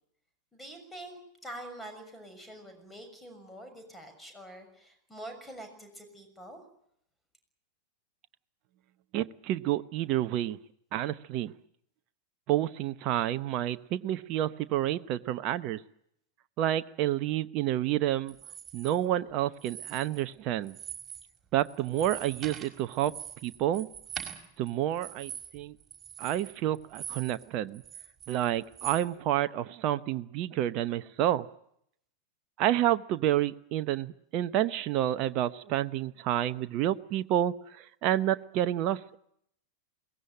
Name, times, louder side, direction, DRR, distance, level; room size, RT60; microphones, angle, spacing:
voice 1, 0.5-6.6, right 1 dB, 5° left, 6 dB, 6.4 m, -46 dB
voice 2, 9.1-10.6 10.9-11.5 12.5-15.8 16.6-18.3 18.7-20.8 21.5-23.1 23.4-23.9 24.6-25.7 26.2-27.8 28.3-31.5 32.6-39.2, right 12 dB, 40° right, 12 dB, 0.9 m, -29 dB
sound 1, 18.3-18.9 19.5-20.3 20.6-21.3 21.6-27.4 27.7-29.0, right 8 dB, 20° right, 5.5 m, -43 dB
22.0 x 19.0 x 9.0 m, 0.71 s
figure-of-eight pair, 90°, 0 cm